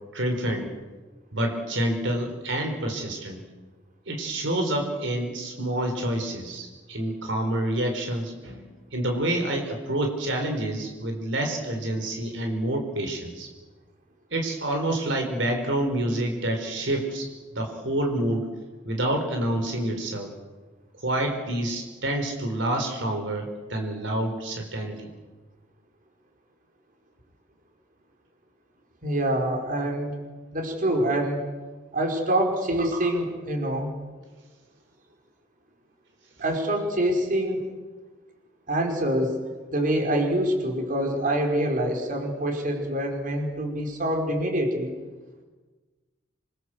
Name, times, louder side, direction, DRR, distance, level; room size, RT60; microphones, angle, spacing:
voice 1, 0.1-0.7 1.3-3.4 4.1-13.5 14.3-18.5 18.9-20.3 21.0-25.1, right 1 dB, 75° right, 3 dB, 4.3 m, -28 dB
voice 2, 29.0-30.1 30.5-31.4 31.9-34.0 36.4-37.6 38.7-39.4 39.7-44.9, right 1 dB, 45° right, 2 dB, 5.0 m, -25 dB
27.5 x 24.0 x 8.0 m, 1.3 s
head